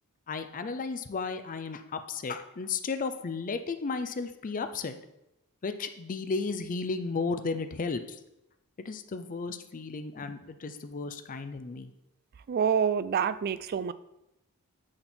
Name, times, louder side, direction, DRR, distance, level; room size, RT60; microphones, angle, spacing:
voice 1, 0.3-5.0 5.6-8.2 8.8-11.9, left 4 dB, 40° left, 9 dB, 0.5 m, -34 dB
voice 2, 12.5-13.9, right 7 dB, 45° right, 15 dB, 0.3 m, -27 dB
8.7 x 4.4 x 4.3 m, 0.88 s
head